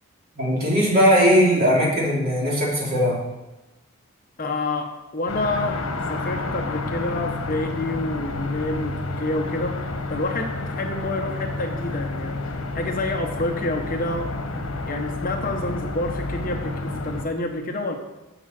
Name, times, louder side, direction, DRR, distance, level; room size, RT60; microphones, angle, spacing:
voice 1, 0.3-3.2, equal, 45° right, -4 dB, 3.3 m, -19 dB
voice 2, 4.4-5.8 6.1-12.5 12.7-14.3 14.9-18.0, left 2 dB, 40° left, 3 dB, 1.0 m, -28 dB
sound 1, 5.3-17.2, left 2 dB, 85° left, 1.1 m, -30 dB
7.1 x 7.0 x 7.5 m, 1.0 s
head